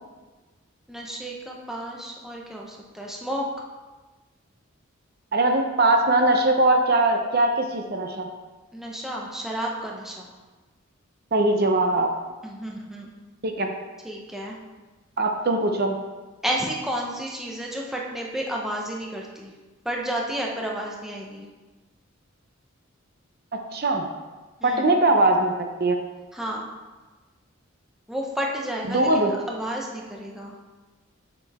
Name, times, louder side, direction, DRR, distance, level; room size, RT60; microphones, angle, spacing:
voice 1, 0.9-3.5 8.7-10.3 12.4-13.1 14.0-14.6 16.4-19.5 19.8-21.4 24.6-25.0 26.3-26.6 28.1-30.6, right 1 dB, ahead, -2 dB, 0.8 m, -31 dB
voice 2, 5.3-8.3 11.3-12.1 13.4-13.7 15.2-16.0 23.7-24.0 24.6-26.0 28.9-29.3, right 2 dB, 45° right, 4 dB, 0.7 m, -21 dB
6.9 x 6.9 x 3.5 m, 1.2 s
head